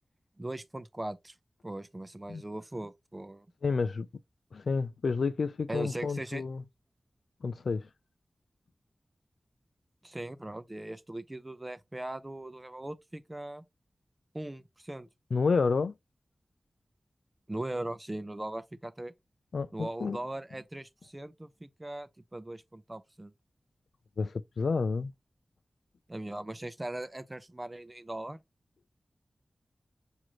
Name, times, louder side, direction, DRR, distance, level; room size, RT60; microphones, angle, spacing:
voice 1, 0.4-1.3 1.6-3.5 5.7-6.4 10.0-13.6 14.3-15.1 17.5-19.1 19.7-23.3 26.1-28.4, right 1 dB, 20° right, 0.5 m, -39 dB
voice 2, 3.6-4.1 4.5-6.6 7.4-7.9 15.3-15.9 19.5-20.2 24.2-25.1, left 4 dB, 85° left, 0.3 m, -30 dB
6.1 x 2.6 x 3.0 m
wide cardioid pair, 65°, 0 cm